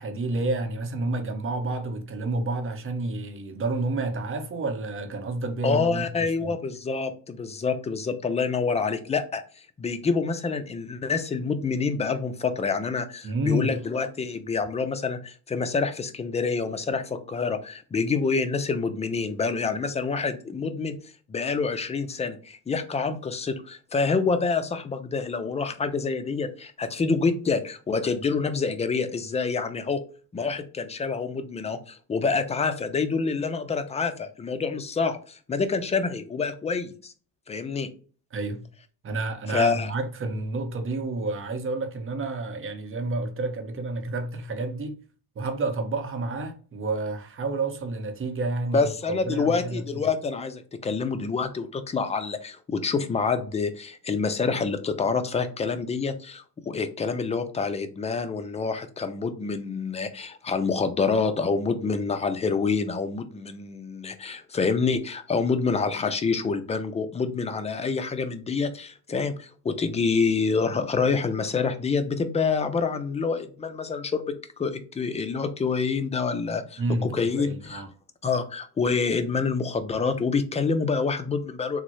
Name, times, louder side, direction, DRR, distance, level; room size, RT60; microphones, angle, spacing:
voice 1, 0.0-6.5 13.2-13.8 38.3-38.6 39.0-45.0 45.4-50.1 76.8-77.9, right 2 dB, 30° right, 0.7 m, -30 dB
voice 2, 5.6-9.4 9.8-20.9 21.3-30.0 30.3-37.1 37.5-37.9 39.5-39.9 48.7-74.3 74.6-77.8 78.2-81.8, left 4 dB, 20° left, 0.4 m, -27 dB
3.5 x 2.1 x 3.0 m
supercardioid pair, 90°, 40 cm